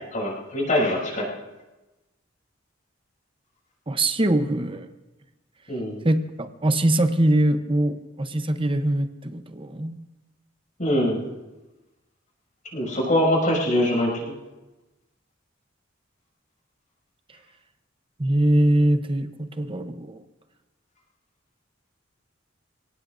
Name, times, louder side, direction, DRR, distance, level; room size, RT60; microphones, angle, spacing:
voice 1, 0.1-1.3 5.7-6.0 10.8-11.3 12.7-14.3, left 1 dB, 40° left, -3 dB, 6.7 m, -23 dB
voice 2, 3.9-4.9 6.0-10.0 18.2-20.2, right 1 dB, 25° right, 8 dB, 0.9 m, -22 dB
28.5 x 18.0 x 2.6 m, 1.1 s
head